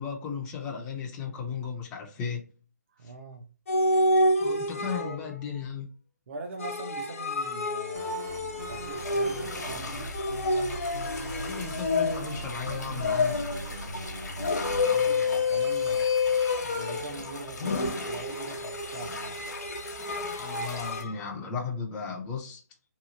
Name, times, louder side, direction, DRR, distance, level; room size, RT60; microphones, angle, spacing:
voice 1, 0.0-2.4 3.0-3.1 4.4-5.9 11.5-13.4 20.3-22.6, left 6 dB, 10° left, 0.4 m, -35 dB
voice 2, 2.9-3.5 4.7-5.2 6.3-10.0 14.8-16.1 16.6-19.4, right 2 dB, 45° right, 0.5 m, -42 dB
sound 1, 3.7-5.4 6.6-9.7 10.1-12.5 13.0-13.7 14.4-17.2 17.6-21.1, left 3 dB, 55° left, 0.6 m, -28 dB
sound 2, 7.9-14.8, right 2 dB, 70° right, 1.0 m, -39 dB
sound 3, 9.0-21.0, left 3 dB, 80° left, 0.9 m, -40 dB
2.9 x 2.4 x 2.5 m
hypercardioid pair, 155°, 9 cm